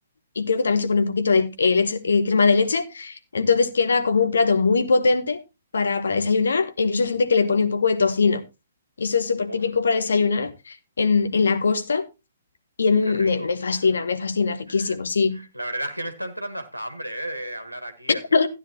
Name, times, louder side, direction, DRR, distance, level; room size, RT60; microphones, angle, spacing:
voice 1, 0.4-5.4 5.7-8.4 9.0-12.0 12.8-15.5 18.1-18.5, left 4 dB, 65° left, 1.1 m, -21 dB
voice 2, 13.2-13.9 14.7-15.0 15.3-18.5, right 1 dB, 90° right, 1.3 m, -34 dB
13.0 x 9.7 x 2.9 m
figure-of-eight pair, 125°, 0 cm